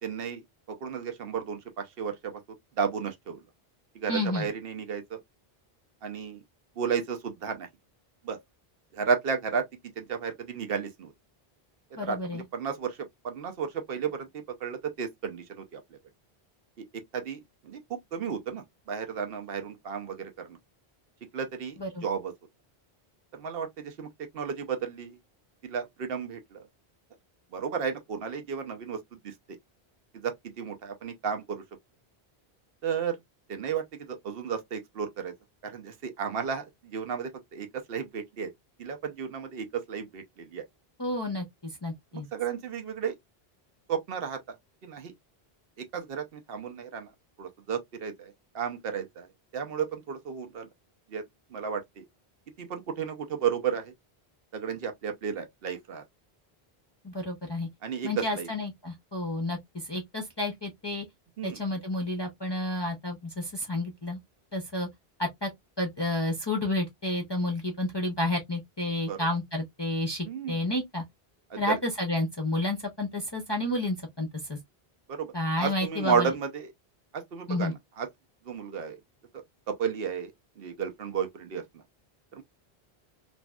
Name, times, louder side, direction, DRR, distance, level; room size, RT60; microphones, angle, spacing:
voice 1, 0.0-2.4 2.8-3.4 3.9-5.2 6.0-6.4 6.8-7.7 8.2-8.4 8.9-9.7 10.0-11.1 12.0-13.0 13.2-16.0 17.1-20.6 21.3-22.3 23.3-24.1 24.3-25.2 25.6-26.6 27.5-29.6 30.1-31.6 32.8-33.2 33.5-35.3 35.6-38.5 38.8-40.6 42.3-43.2 43.9-44.4 44.8-45.1 45.8-47.1 47.4-49.3 49.5-50.7 51.1-51.2 51.5-52.0 52.6-53.9 54.5-56.0 57.8-58.5 61.4-61.6 69.1-69.2 70.2-70.6 71.5-71.8 75.1-76.7 77.1-78.1 78.5-79.0 79.3-80.3 80.6-81.6 82.3-82.4, right 6 dB, 70° right, 0.9 m, -33 dB
voice 2, 4.1-4.5 12.0-12.4 21.8-22.0 41.0-42.3 57.0-57.7 58.0-61.0 61.4-64.2 64.5-64.9 65.2-65.5 65.8-71.0 71.6-74.6 75.3-76.3 77.5-77.7, left 1 dB, 30° left, 0.6 m, -30 dB
3.1 x 2.6 x 2.2 m
omnidirectional pair, 1.0 m